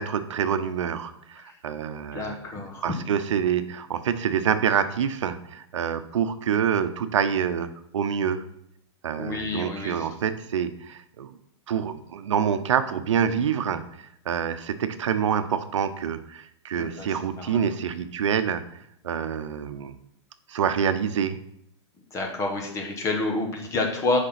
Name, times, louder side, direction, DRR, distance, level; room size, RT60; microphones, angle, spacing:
voice 1, 0.0-2.4 2.8-8.4 9.0-11.3 11.7-18.6 19.0-19.9 20.5-21.4, right 8 dB, 85° right, 10 dB, 0.8 m, -26 dB
voice 2, 2.1-2.9 9.2-10.1 16.7-17.6 22.1-24.2, left 2 dB, 20° left, 2 dB, 1.4 m, -29 dB
6.6 x 5.2 x 5.8 m, 0.75 s
hypercardioid pair, 145°, 15 cm